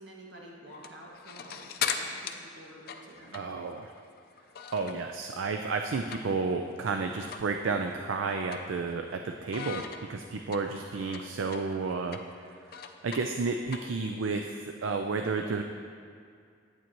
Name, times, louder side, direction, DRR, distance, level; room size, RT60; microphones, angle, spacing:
voice 1, 0.0-3.4, right 1 dB, 65° right, -3 dB, 1.7 m, -49 dB
sound 1, 0.7-5.2 5.5-6.6 6.9-7.0 7.3-7.5 7.9-9.1 9.5-14.3, left 7 dB, 50° left, 0.5 m, -39 dB
voice 2, 3.3-3.9 4.7-12.2 12.7-15.6, right 4 dB, 80° right, 4 dB, 0.4 m, -32 dB
11.0 x 8.9 x 3.0 m, 2.3 s
head